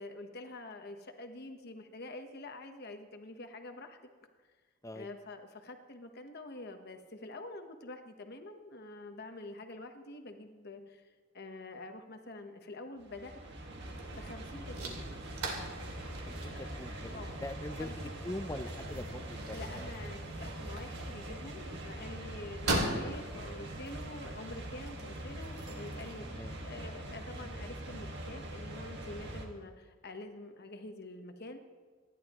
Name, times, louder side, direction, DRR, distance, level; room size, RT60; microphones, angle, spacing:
voice 1, 0.0-4.0 4.9-13.3 14.1-15.0 16.5-16.7 17.1-17.4 17.8-17.9 19.5-31.6, left 2 dB, 45° left, 6 dB, 1.1 m, -47 dB
sound 1, 13.0-29.5, right 1 dB, 50° right, 1.8 m, -43 dB
sound 2, 13.8-26.1, right 2 dB, 80° right, 2.6 m, -41 dB
voice 2, 16.3-19.9 20.4-20.7 26.2-26.6, left 1 dB, 15° left, 9 dB, 0.5 m, -43 dB
27.0 x 11.0 x 3.0 m, 1.5 s
head